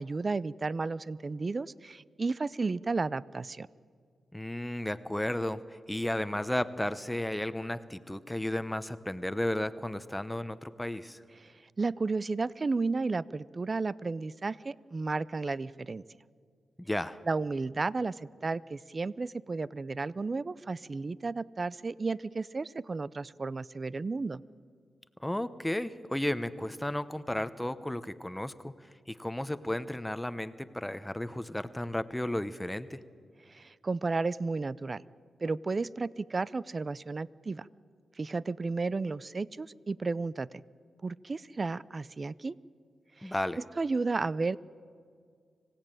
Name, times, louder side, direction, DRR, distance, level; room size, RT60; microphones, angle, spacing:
voice 1, 0.0-3.7 11.4-16.0 17.3-24.4 33.5-35.0 35.4-37.7 38.2-40.5 41.0-42.6 43.2-43.3 43.8-44.6, right 3 dB, 40° right, 20 dB, 0.5 m, -33 dB
voice 2, 4.3-11.2 16.8-17.2 25.2-28.7 29.1-33.0 43.2-43.6, left 1 dB, 10° left, 12 dB, 0.9 m, -33 dB
25.5 x 16.5 x 9.1 m, 2.1 s
cardioid pair, 60°, 0 cm